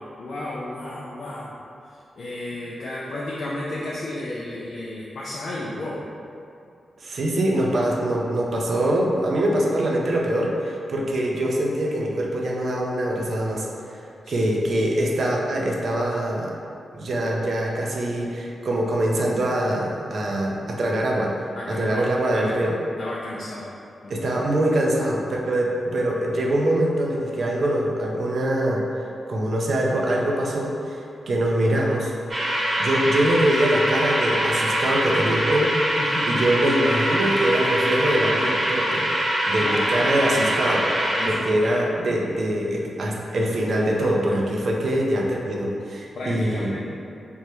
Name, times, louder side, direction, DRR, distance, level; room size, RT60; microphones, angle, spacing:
voice 1, 0.0-1.5 1.9-6.0 14.2-14.8 21.5-22.5 23.0-23.7 24.0-24.3 36.0-36.4 39.6-40.4 41.1-41.7 46.1-46.9, left 1 dB, 70° left, -6 dB, 0.4 m, -33 dB
voice 2, 7.0-13.7 14.3-16.5 16.9-21.3 21.7-22.8 24.1-28.8 29.3-31.0 31.3-32.1 32.8-35.7 36.3-39.1 39.5-46.8, right 1 dB, 65° right, -2 dB, 0.4 m, -23 dB
sound 1, 32.3-41.3, right 1 dB, 45° right, 0.9 m, -24 dB
3.5 x 2.1 x 2.8 m, 2.5 s
supercardioid pair, 45°, 0 cm